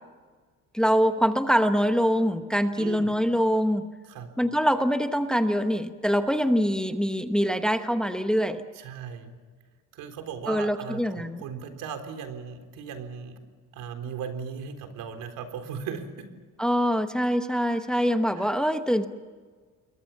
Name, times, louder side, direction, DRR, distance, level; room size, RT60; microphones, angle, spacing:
voice 1, 0.7-3.9 4.4-8.6 10.5-11.4 16.6-19.1, equal, ahead, 8 dB, 1.0 m, -24 dB
voice 2, 2.8-3.2 4.1-4.3 8.8-9.3 9.9-13.4 13.7-16.3 18.4-18.5, right 7 dB, 80° right, 7 dB, 3.9 m, -37 dB
28.0 x 22.5 x 7.3 m, 1.5 s
cardioid pair, 155°, 32 cm